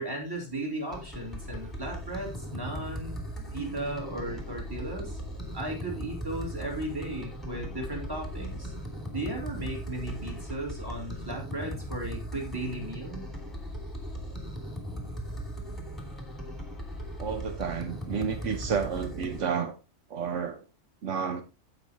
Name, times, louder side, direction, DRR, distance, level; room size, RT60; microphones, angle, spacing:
voice 1, 0.0-3.2 3.5-5.2 5.5-8.7 9.1-13.2, right 1 dB, 20° right, 3.5 m, -36 dB
sound 1, 0.9-19.4, equal, ahead, 2.8 m, -38 dB
voice 2, 17.2-19.8 20.1-20.6 21.0-21.4, right 6 dB, 75° right, 1.2 m, -31 dB
16.0 x 5.5 x 3.0 m
omnidirectional pair, 1.3 m